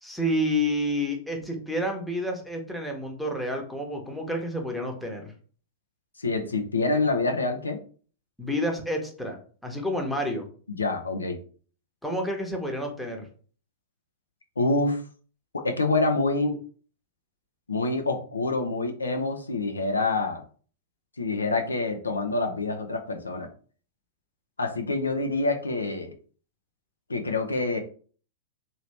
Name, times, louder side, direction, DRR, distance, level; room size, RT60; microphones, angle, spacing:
voice 1, 0.0-5.3 8.4-10.5 12.0-13.3, equal, ahead, 2 dB, 0.9 m, -29 dB
voice 2, 6.2-7.8 10.7-11.4 14.6-15.0 15.5-16.6 17.7-20.4 21.2-23.5 24.6-26.1 27.1-27.8, left 3 dB, 85° left, 5 dB, 0.5 m, -26 dB
2.9 x 2.7 x 3.2 m, 0.42 s
figure-of-eight pair, 100°, 0 cm